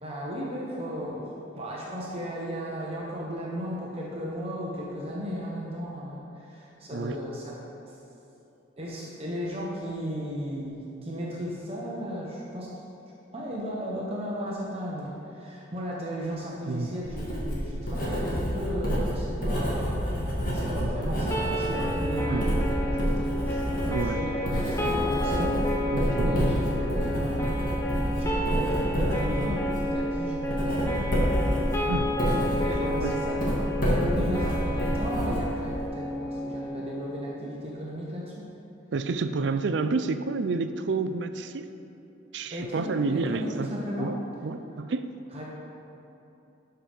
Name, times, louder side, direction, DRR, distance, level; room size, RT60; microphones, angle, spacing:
voice 1, 0.0-7.5 7.9-8.0 8.8-12.7 13.3-27.7 28.1-31.6 32.6-38.5 42.5-44.2 45.3-45.4, equal, 30° right, -4 dB, 0.9 m, -35 dB
Writing, 17.0-35.9, equal, 45° left, 1.9 m, -28 dB
voice 2, 20.6-20.9 22.3-22.7 23.9-24.2 25.9-26.6 31.9-32.2 32.7-33.2 38.9-41.7 42.3-43.7 44.0-45.1, right 4 dB, 65° right, 10 dB, 0.4 m, -30 dB
sound 1, 21.3-37.3, equal, 15° left, 0.8 m, -31 dB
12.0 x 5.8 x 3.5 m, 2.9 s
head